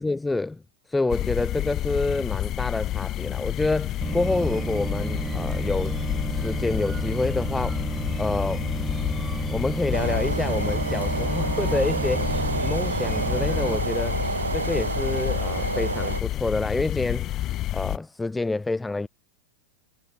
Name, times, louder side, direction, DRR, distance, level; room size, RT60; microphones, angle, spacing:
voice 1, 0.0-6.0 6.3-7.9 8.2-8.7 9.5-12.3 12.6-14.2 14.5-17.3 17.7-19.1, left 3 dB, 10° left, 1.1 m, -28 dB
sound 1, 1.1-18.0, left 14 dB, 35° left, 0.5 m, -29 dB
sound 2, 4.0-13.8, right 5 dB, 15° right, 3.9 m, -32 dB
sound 3, 9.9-16.2, right 4 dB, 75° right, 0.7 m, -29 dB
figure-of-eight pair, 90°, 0 cm